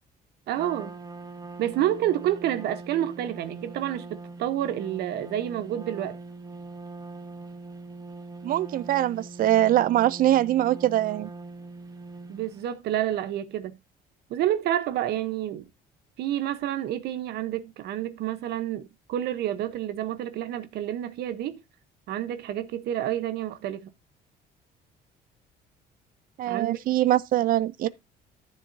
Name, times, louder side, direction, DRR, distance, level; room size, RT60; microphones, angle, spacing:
Trumpet, 0.5-12.7, right 3 dB, 20° right, 1.0 m, -42 dB
voice 1, 0.5-1.0 1.6-6.2 12.3-13.8 14.3-15.7 16.2-21.6 22.1-23.9 26.5-26.8, right 12 dB, 75° right, 0.9 m, -29 dB
voice 2, 8.4-11.3 26.4-27.9, right 13 dB, 55° right, 0.4 m, -23 dB
12.5 x 7.4 x 2.7 m
cardioid pair, 110°, 17 cm